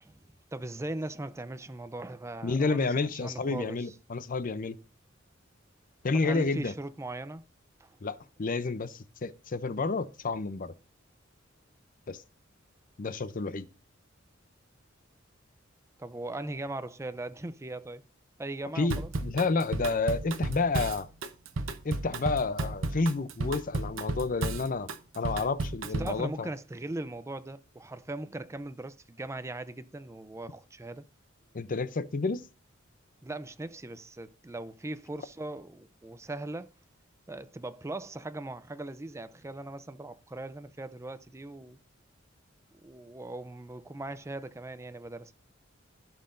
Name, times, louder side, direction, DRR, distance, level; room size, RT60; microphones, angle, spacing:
voice 1, 0.0-3.9 6.2-7.4 7.8-8.0 16.0-18.0 18.4-19.1 26.0-31.0 33.2-36.7 37.3-41.8 42.7-45.4, right 2 dB, 15° right, 0.5 m, -39 dB
voice 2, 2.4-4.8 6.0-6.7 8.0-10.7 12.1-12.2 13.0-13.7 18.8-21.1 21.8-26.5 31.5-32.4, left 3 dB, 45° left, 0.6 m, -30 dB
Drum kit / Drum, 18.9-26.2, right 2 dB, 80° right, 0.9 m, -33 dB
15.5 x 5.7 x 2.6 m
head